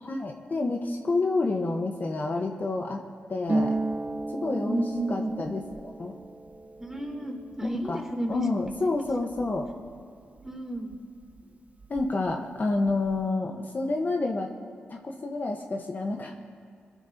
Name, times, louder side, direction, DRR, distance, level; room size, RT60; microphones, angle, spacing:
voice 1, 0.0-3.0 3.3-3.8 4.3-4.8 5.1-6.1 7.9-8.0 8.3-9.7 11.9-14.5 14.9-16.3, left 3 dB, 45° left, 2 dB, 1.4 m, -29 dB
Harp, 3.5-11.0 11.2-12.3 12.6-13.2, right 2 dB, 35° right, 0.8 m, -35 dB
voice 2, 4.5-5.3 6.8-8.5 8.8-8.9 10.4-11.0, right 1 dB, 10° right, 0 dB, 3.4 m, -32 dB
23.5 x 12.5 x 3.0 m, 2.2 s
supercardioid pair, 50°, 4 cm